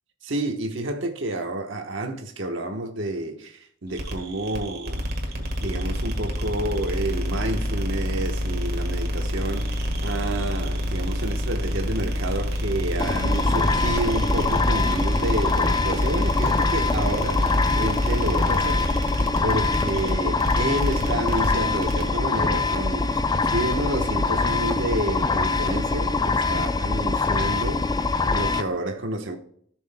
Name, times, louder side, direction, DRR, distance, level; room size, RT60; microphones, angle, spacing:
voice 1, 0.2-5.1 5.6-29.4, right 1 dB, 65° right, 1.2 m, -30 dB
sound 1, 3.9-22.2, equal, 50° right, 1.5 m, -27 dB
sound 2, 13.0-28.6, left 3 dB, 20° left, 0.4 m, -24 dB
15.0 x 6.3 x 2.2 m
head